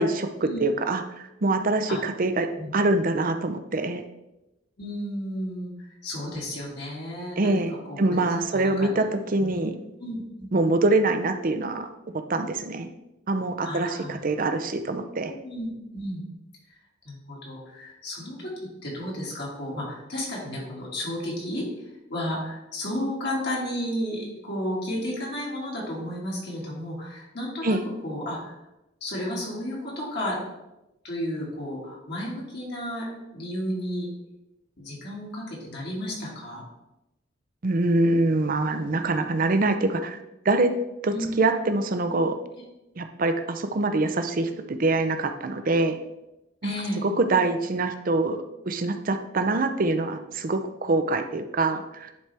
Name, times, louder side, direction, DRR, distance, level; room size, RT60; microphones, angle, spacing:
voice 1, 0.0-4.0 7.4-9.8 10.5-12.9 13.3-15.3 27.6-27.8 37.6-40.2 40.4-40.7 41.0-42.4 43.0-46.0 46.6-46.7 47.0-52.1, right 2 dB, 45° right, 8 dB, 0.6 m, -25 dB
voice 2, 4.8-7.6 7.9-8.2 8.5-8.9 9.4-9.6 10.0-10.5 13.6-14.2 15.3-16.2 17.0-18.5 18.8-21.7 22.1-27.8 28.0-28.5 29.0-30.4 31.0-33.1 33.3-34.1 34.8-36.6 41.1-41.3 46.6-47.0, left 1 dB, 55° left, -4 dB, 2.3 m, -32 dB
10.5 x 4.3 x 3.4 m, 0.94 s
head